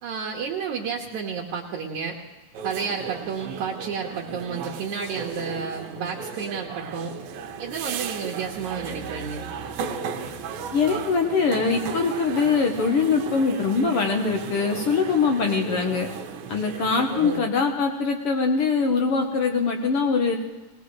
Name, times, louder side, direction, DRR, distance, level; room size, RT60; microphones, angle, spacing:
voice 1, 0.0-2.2 2.6-7.1 7.6-9.5 17.1-17.4, right 6 dB, 65° right, -2 dB, 2.4 m, -31 dB
sound 1, 2.5-17.4, right 6 dB, 85° right, 2.7 m, -35 dB
voice 2, 10.7-16.1 16.5-20.4, left 5 dB, 70° left, 3 dB, 1.3 m, -23 dB
20.0 x 19.5 x 3.2 m, 1.2 s
omnidirectional pair, 4.0 m